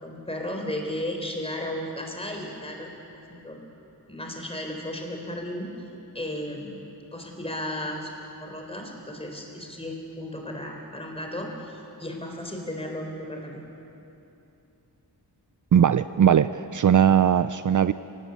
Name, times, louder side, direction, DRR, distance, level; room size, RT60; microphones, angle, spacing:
voice 1, 0.0-2.9 3.3-3.6 4.1-5.7 6.1-6.8 7.1-8.1 8.4-13.6, left 1 dB, 15° left, 2 dB, 4.1 m, -34 dB
voice 2, 15.7-17.9, right 8 dB, 50° right, 13 dB, 0.5 m, -19 dB
26.5 x 19.0 x 8.3 m, 2.9 s
wide cardioid pair, 135°, 39 cm